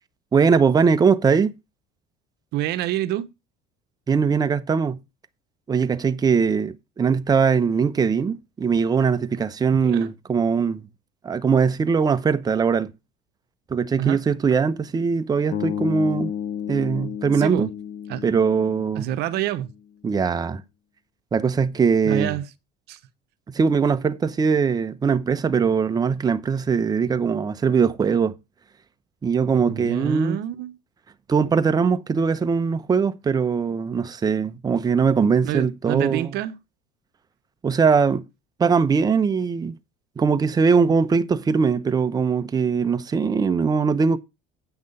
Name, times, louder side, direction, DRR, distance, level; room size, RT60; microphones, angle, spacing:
voice 1, 0.3-1.5 4.1-5.0 5.7-10.8 11.2-12.9 13.7-16.3 16.7-17.7 18.2-19.1 20.0-20.6 21.3-22.4 23.5-28.3 29.2-30.4 31.3-36.3 37.6-38.2 38.6-39.7 40.2-44.2, right 5 dB, 20° right, 0.8 m, -21 dB
voice 2, 2.5-3.3 9.8-10.1 14.0-14.2 17.4-17.7 18.1-18.2 18.9-19.7 22.0-22.4 22.9-23.0 29.5-30.7 35.4-36.6, right 13 dB, 60° right, 0.9 m, -27 dB
sound 1, 15.5-19.7, left 9 dB, 40° left, 1.8 m, -32 dB
8.8 x 6.0 x 5.5 m
cardioid pair, 120°, 19 cm